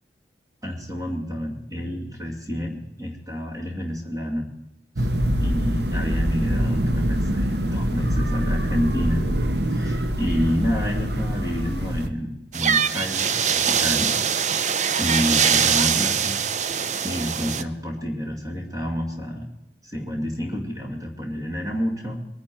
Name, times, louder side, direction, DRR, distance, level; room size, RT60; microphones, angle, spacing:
voice 1, 0.6-4.5 5.0-5.1 5.4-9.3 9.7-14.2 15.0-16.3 17.0-19.5 19.8-22.3, equal, 20° right, 1 dB, 2.1 m, -29 dB
sound 1, 5.0-12.1, equal, 65° right, 1.1 m, -24 dB
sound 2, 12.5-17.6, right 7 dB, 40° right, 0.6 m, -22 dB
22.5 x 10.5 x 4.5 m, 0.88 s
head